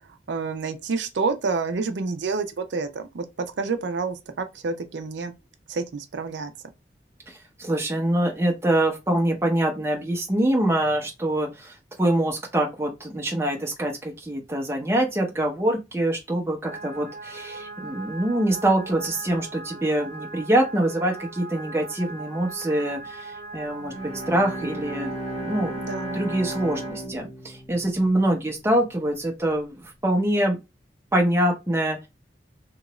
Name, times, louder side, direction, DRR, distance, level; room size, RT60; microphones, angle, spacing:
voice 1, 0.3-3.2 3.6-5.3 5.7-6.5 25.8-26.2, right 4 dB, 80° right, 0.5 m, -28 dB
voice 2, 7.3-23.9 24.3-25.1 25.4-25.7 26.1-30.6 31.1-32.0, right 1 dB, 15° right, 0.7 m, -24 dB
sound 1, 16.6-26.9, right 3 dB, 50° right, 0.8 m, -39 dB
Bowed string instrument, 23.8-28.6, right 1 dB, 35° left, 1.3 m, -35 dB
2.9 x 2.4 x 3.0 m
head